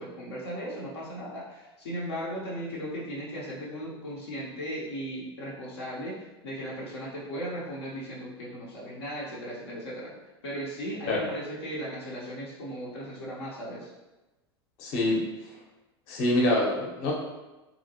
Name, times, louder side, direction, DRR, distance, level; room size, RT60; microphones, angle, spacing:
voice 1, 0.0-10.1 10.4-13.9, equal, 85° left, -6 dB, 0.8 m, -37 dB
voice 2, 14.8-15.2 16.1-17.1, left 1 dB, 55° left, -3 dB, 0.9 m, -25 dB
2.8 x 2.7 x 2.8 m, 1.1 s
hypercardioid pair, 95°, 13 cm